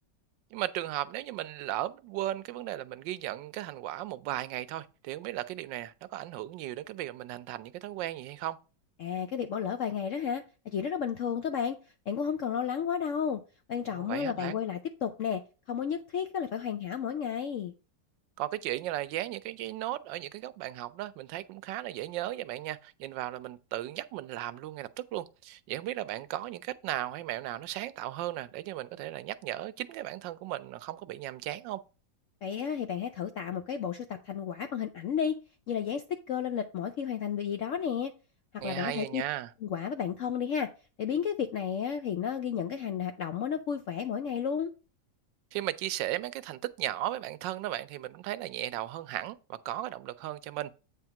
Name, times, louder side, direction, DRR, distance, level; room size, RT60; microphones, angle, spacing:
voice 1, 0.5-8.6 13.9-14.6 18.4-31.8 38.6-39.5 45.5-50.7, right 14 dB, 85° right, 1.3 m, -36 dB
voice 2, 9.0-11.8 12.1-13.4 13.7-15.4 15.7-17.7 32.4-35.4 35.7-38.1 38.5-39.2 39.6-40.7 41.0-44.7, left 7 dB, 75° left, 0.7 m, -32 dB
8.4 x 3.5 x 5.8 m
omnidirectional pair, 1.9 m